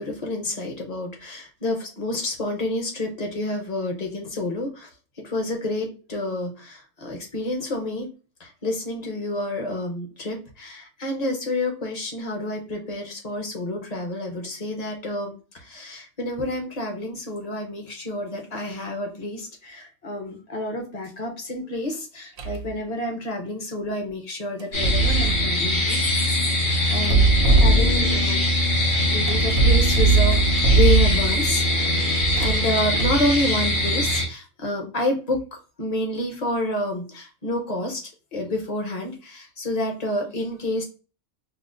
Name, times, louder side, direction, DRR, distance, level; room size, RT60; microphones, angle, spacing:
voice 1, 0.0-4.9 5.2-8.1 8.4-26.0 26.9-28.5 29.1-30.4 30.7-38.0 38.3-40.8, left 1 dB, 35° left, 2 dB, 0.7 m, -29 dB
sound 1, 22.4-22.7 24.6-25.5 27.0-28.3 29.3-31.5 32.2-33.3, right 3 dB, 90° right, 1.0 m, -20 dB
sound 2, 24.7-34.2, left 1 dB, 80° left, 1.9 m, -22 dB
5.4 x 2.0 x 2.4 m, 0.35 s
omnidirectional pair, 1.4 m